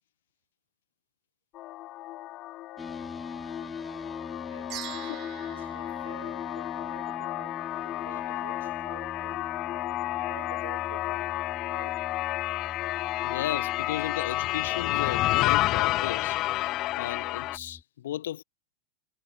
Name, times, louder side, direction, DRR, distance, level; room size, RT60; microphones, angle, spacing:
sound 1, 1.5-17.6, left 17 dB, 35° left, 1.7 m, -31 dB
sound 2, 2.8-17.8, left 4 dB, 15° left, 3.7 m, -43 dB
voice 1, 4.5-7.7 8.0-9.6 10.2-12.1, right 11 dB, 60° right, 5.1 m, -50 dB
sound 3, 4.7-7.2, right 16 dB, 35° right, 1.2 m, -44 dB
voice 2, 13.2-16.4 16.6-18.4, left 12 dB, 60° left, 1.0 m, -35 dB
figure-of-eight pair, 90°, 0 cm